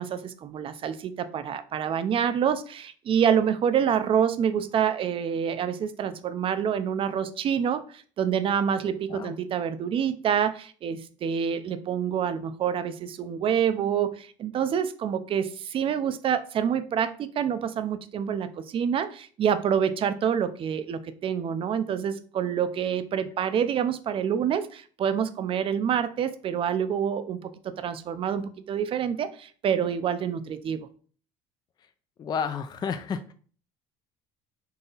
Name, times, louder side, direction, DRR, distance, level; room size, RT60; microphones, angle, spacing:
voice 1, 0.0-30.9, right 8 dB, 40° right, 0.5 m, -27 dB
voice 2, 32.2-33.3, left 6 dB, 30° left, 0.4 m, -31 dB
4.0 x 2.8 x 3.9 m
supercardioid pair, 100°, 13 cm